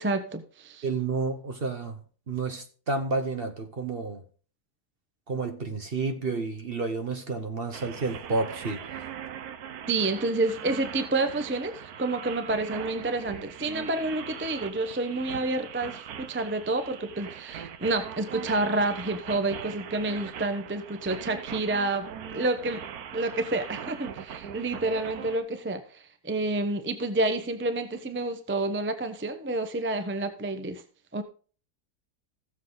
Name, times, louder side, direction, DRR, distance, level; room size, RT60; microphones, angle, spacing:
voice 1, 0.0-0.8 9.9-22.8 23.1-30.8 31.1-31.2, right 2 dB, 10° right, 0.7 m, -29 dB
voice 2, 0.8-2.0 2.3-4.2 5.3-9.1, right 3 dB, 40° right, 1.1 m, -30 dB
sound 1, 7.7-25.4, right 8 dB, 70° right, 1.3 m, -41 dB
15.0 x 7.5 x 3.9 m
omnidirectional pair, 1.7 m